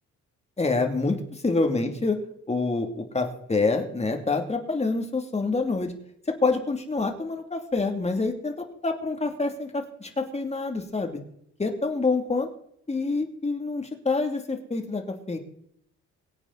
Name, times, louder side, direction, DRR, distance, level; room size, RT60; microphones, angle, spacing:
voice 1, 0.6-2.2 2.5-5.9 6.4-11.2 11.6-12.5 12.9-15.4, left 3 dB, 20° left, 4 dB, 2.6 m, -27 dB
22.5 x 8.8 x 4.1 m, 0.71 s
cardioid pair, 90°, 30 cm